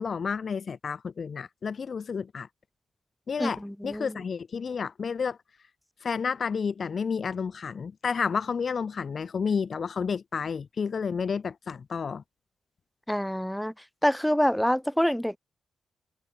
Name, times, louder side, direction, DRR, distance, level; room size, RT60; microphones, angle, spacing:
voice 1, 0.0-2.5 3.3-5.4 6.0-12.2, left 6 dB, 50° left, 0.3 m, -31 dB
voice 2, 3.4-4.2 13.1-13.7 14.0-15.4, equal, 5° left, 0.6 m, -26 dB
cardioid pair, 100°, 0 cm